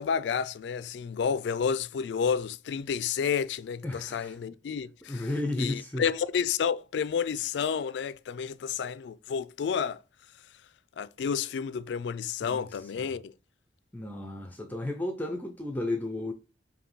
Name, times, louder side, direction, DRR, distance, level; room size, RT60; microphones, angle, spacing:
voice 1, 0.0-10.0 11.0-13.3, left 7 dB, 70° left, 0.3 m, -30 dB
voice 2, 3.8-4.3 5.1-6.0 12.4-13.2 13.9-16.3, left 2 dB, 10° left, 0.4 m, -33 dB
5.0 x 2.7 x 3.0 m
head